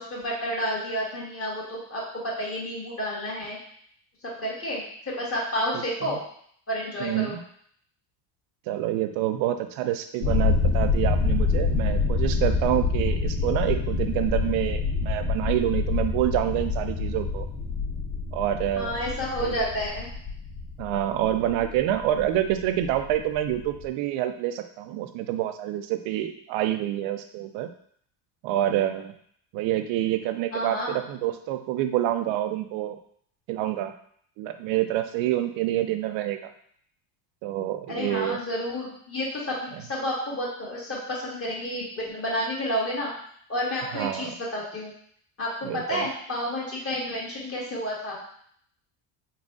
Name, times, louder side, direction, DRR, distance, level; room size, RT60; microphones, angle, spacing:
voice 1, 0.0-3.6 4.2-4.8 5.2-6.2 6.7-7.4 18.8-20.1 30.5-31.0 37.9-43.1 43.5-44.9 45.4-48.2, equal, 30° left, -4 dB, 1.6 m, -30 dB
voice 2, 5.7-6.2 7.0-7.4 8.7-17.5 18.3-19.0 19.4-19.6 20.8-27.7 28.4-29.1 29.5-33.0 33.5-33.9 34.4-36.5 37.4-38.4 43.9-44.3 45.6-46.1, right 13 dB, 70° right, 8 dB, 0.6 m, -27 dB
sound 1, 10.2-23.8, left 4 dB, 50° left, 1.6 m, -27 dB
4.0 x 2.4 x 3.6 m, 0.63 s
supercardioid pair, 105°, 47 cm